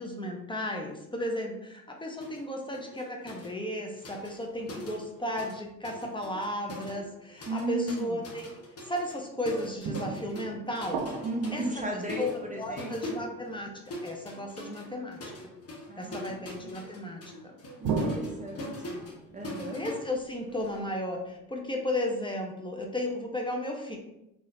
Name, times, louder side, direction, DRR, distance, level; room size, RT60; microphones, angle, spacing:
voice 1, 0.0-8.5 8.8-11.1 11.5-11.6 12.2-13.7 14.0-15.5 16.0-17.6 19.7-24.0, left 1 dB, 15° left, 1 dB, 0.8 m, -34 dB
sound 1, 2.2-2.5 2.7-5.6 5.8-20.8, left 1 dB, 40° left, 1.1 m, -43 dB
sound 2, 4.1-4.9 5.7-5.8 9.8-12.7 17.8-21.3, right 4 dB, 70° right, 0.6 m, -37 dB
voice 2, 7.5-8.2 11.2-13.2 15.9-16.8 17.8-19.8, right 2 dB, 20° right, 0 dB, 0.6 m, -36 dB
3.8 x 3.0 x 2.7 m, 0.86 s
hypercardioid pair, 65°, 37 cm